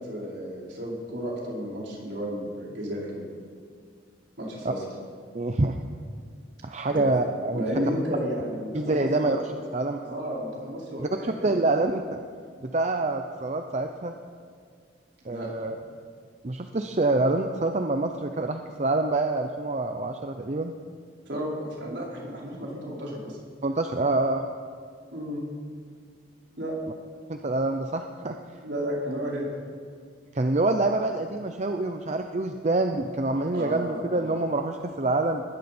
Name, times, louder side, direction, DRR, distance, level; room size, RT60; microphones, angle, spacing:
voice 1, 0.0-3.3 4.4-4.8 6.9-7.1 7.5-9.3 10.0-11.6 15.3-15.5 21.3-23.4 25.1-25.4 26.6-26.7 28.6-29.5 33.5-34.3, equal, 70° right, -4 dB, 5.0 m, -32 dB
voice 2, 5.3-5.7 6.6-7.6 8.7-9.4 9.7-10.0 11.0-12.2 12.6-14.1 15.2-15.7 16.4-20.7 23.6-24.5 27.3-28.3 30.3-35.4, right 2 dB, 40° right, 5 dB, 0.7 m, -26 dB
20.0 x 16.0 x 4.4 m, 2.1 s
head